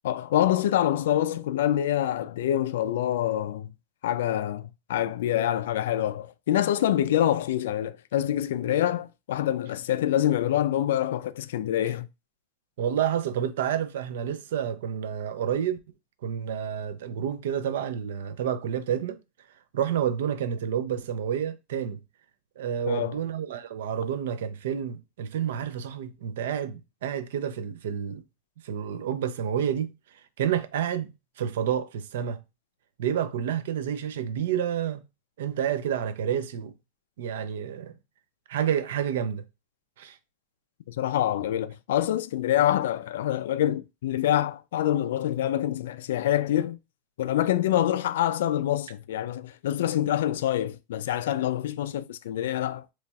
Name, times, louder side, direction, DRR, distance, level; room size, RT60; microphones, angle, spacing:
voice 1, 0.0-3.7 4.0-12.1 22.9-23.2 40.9-46.8 47.2-52.8, left 12 dB, 80° left, 0.3 m, -26 dB
voice 2, 12.8-15.8 16.2-19.2 19.7-22.0 22.6-28.2 28.6-29.9 30.4-31.1 31.4-32.4 33.0-35.0 35.4-36.7 37.2-37.9 38.5-39.4 40.0-40.2, right 9 dB, 80° right, 0.5 m, -29 dB
4.0 x 3.1 x 2.3 m
supercardioid pair, 165°, 0 cm